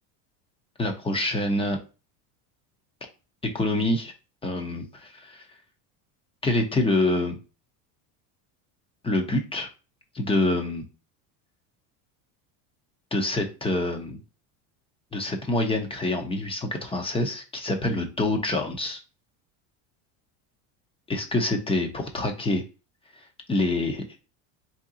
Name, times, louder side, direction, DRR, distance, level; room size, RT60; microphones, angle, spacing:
voice 1, 0.8-1.8 3.5-4.1 4.4-5.4 6.4-7.4 9.0-9.7 10.1-10.8 13.1-14.2 15.1-19.0 21.1-22.6 23.5-24.0, left 2 dB, 10° left, 4 dB, 0.6 m, -26 dB
3.7 x 2.8 x 3.7 m, 0.31 s
supercardioid pair, 135°, 47 cm